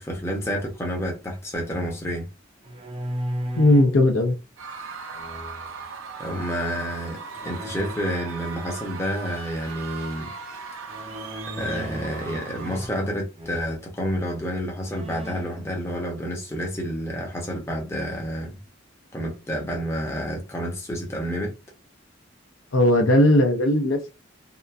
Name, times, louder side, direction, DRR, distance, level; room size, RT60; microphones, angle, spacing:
voice 1, 0.0-2.3 6.2-10.3 11.6-18.6 19.1-21.6, equal, 15° left, 0.7 m, -29 dB
sound 1, 2.6-4.0 5.1-5.9 7.3-8.0 10.9-12.3 12.6-13.1 13.4-13.8 14.4-14.5 14.8-15.6, equal, 25° right, 0.6 m, -35 dB
voice 2, 3.6-4.4 22.7-24.1, left 1 dB, 75° left, 0.6 m, -18 dB
Screaming / Cheering / Crowd, 4.6-13.1, right 5 dB, 90° right, 0.7 m, -38 dB
2.8 x 2.4 x 2.3 m
head